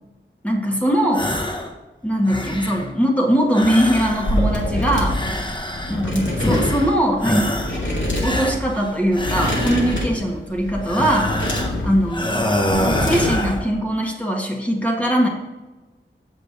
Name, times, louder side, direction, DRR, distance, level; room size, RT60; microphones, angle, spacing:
voice 1, 0.4-1.3 2.0-5.2 5.9-7.6 8.2-11.4 11.8-12.5 13.0-15.3, equal, 5° left, -1 dB, 1.6 m, -21 dB
sound 1, 1.1-1.7 2.1-2.9 3.5-4.6 5.0-6.1 6.4-6.9 7.2-7.8 8.2-10.1 10.8-11.8 12.1-13.6, left 1 dB, 20° left, 1.1 m, -25 dB
sound 2, 4.1-13.7, left 1 dB, 70° left, 2.2 m, -25 dB
7.3 x 6.9 x 4.0 m, 1.1 s
wide cardioid pair, 50°, 21 cm